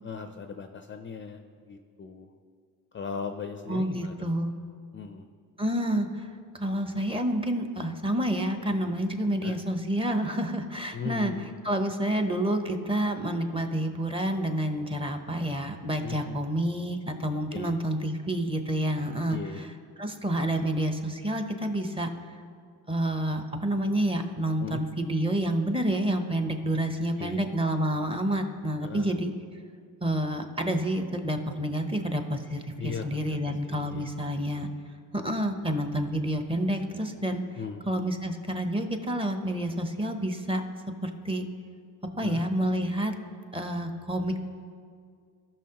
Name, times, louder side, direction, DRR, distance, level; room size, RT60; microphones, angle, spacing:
voice 1, 0.0-1.4 1.7-2.3 2.9-4.3 4.9-5.3 9.4-9.6 10.9-11.5 16.0-16.4 17.5-17.7 19.3-19.7 24.6-24.8 27.2-27.4 28.8-29.2 32.8-34.1 37.6-37.8 42.2-42.4, left 6 dB, 30° left, 6 dB, 0.4 m, -38 dB
voice 2, 3.7-4.5 5.6-6.3 6.5-11.3 11.6-19.4 20.0-22.1 22.9-29.3 30.0-34.7 35.1-37.4 37.9-40.6 41.0-41.4 42.2-43.1 43.5-44.4, right 1 dB, 15° right, 6 dB, 0.8 m, -29 dB
17.5 x 6.0 x 2.9 m, 2.2 s
cardioid pair, 110°, 39 cm